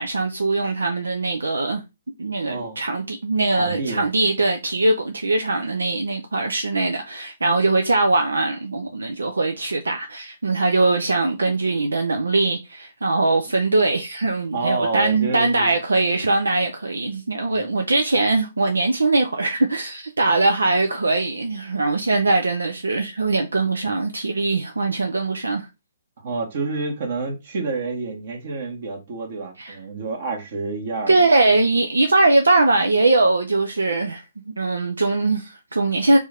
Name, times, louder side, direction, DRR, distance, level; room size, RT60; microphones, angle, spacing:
voice 1, 0.0-1.8 2.2-25.7 29.6-29.8 31.1-36.2, right 2 dB, 80° right, 0.6 m, -21 dB
voice 2, 2.4-2.8 3.6-4.0 14.5-15.8 17.5-17.7 26.2-31.2, right 3 dB, 55° right, 1.6 m, -28 dB
4.5 x 2.7 x 3.5 m
figure-of-eight pair, 130°, 0 cm